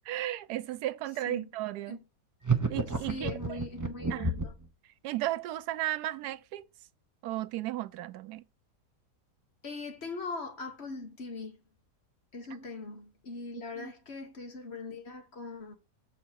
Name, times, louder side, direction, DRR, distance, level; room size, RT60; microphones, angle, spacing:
voice 1, 0.1-2.0 2.7-3.6 4.1-4.3 5.0-6.7 7.2-8.4 13.8-13.9, right 14 dB, 90° right, 1.1 m, -34 dB
sound 1, 2.4-4.7, right 4 dB, 25° right, 0.4 m, -30 dB
voice 2, 3.0-4.5 9.6-11.6 12.3-15.7, left 3 dB, 45° left, 1.4 m, -41 dB
7.1 x 4.7 x 4.5 m
omnidirectional pair, 1.6 m